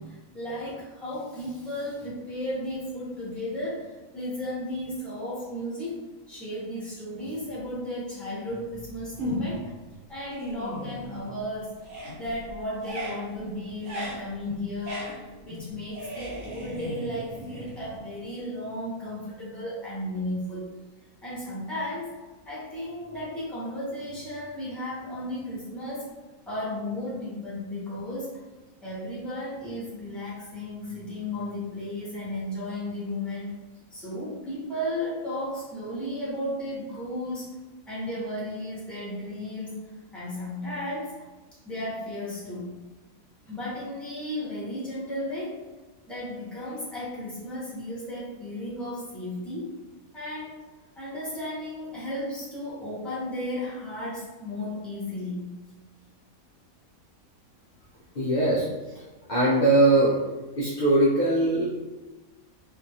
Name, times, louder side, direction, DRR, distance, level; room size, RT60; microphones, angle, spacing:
voice 1, 0.0-6.0 6.3-9.7 10.1-11.8 12.2-15.2 15.4-20.7 21.2-22.1 22.4-26.1 26.5-28.4 28.8-33.5 33.9-37.5 37.9-39.8 40.1-41.2 41.6-42.7 43.4-45.6 46.1-49.7 50.1-50.6 51.0-55.5, left 1 dB, ahead, -8 dB, 0.7 m, -34 dB
sound 1, 9.2-9.7 10.1-11.5 11.8-18.3, equal, 65° right, 1.1 m, -36 dB
voice 2, 58.2-58.7 58.9-60.2 60.6-61.7, right 2 dB, 80° left, -7 dB, 0.4 m, -21 dB
2.6 x 2.4 x 2.7 m, 1.1 s
omnidirectional pair, 1.5 m